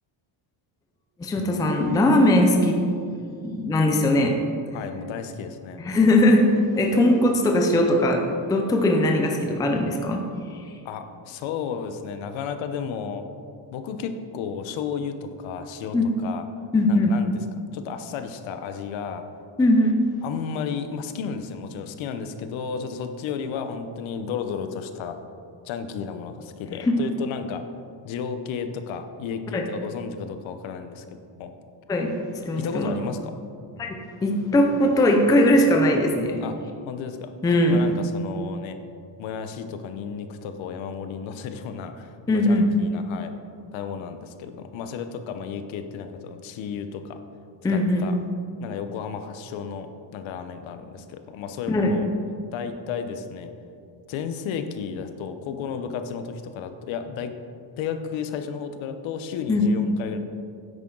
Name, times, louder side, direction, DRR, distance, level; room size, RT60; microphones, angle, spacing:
voice 1, 1.2-2.8 3.4-4.4 5.8-10.2 15.9-16.1 16.7-17.1 19.6-19.9 29.5-29.6 31.9-32.1 32.5-32.9 33.8-33.9 34.2-36.4 37.4-37.8 42.3-42.7 47.6-48.1 51.7-52.0 59.5-59.7, left 1 dB, 10° left, 3 dB, 0.4 m, -20 dB
voice 2, 4.7-5.8 10.8-13.2 13.7-16.4 16.9-17.3 17.7-19.2 20.2-25.2 25.6-27.6 28.0-31.0 31.4-31.5 32.6-33.4 36.4-36.6 36.9-37.3 37.7-38.8 39.2-43.3 43.7-47.2 47.7-48.1 48.6-52.1 52.5-53.5 54.1-57.3 57.8-60.2, left 6 dB, 65° left, 8 dB, 0.9 m, -33 dB
10.0 x 8.5 x 3.8 m, 2.4 s
cardioid pair, 175°, 49 cm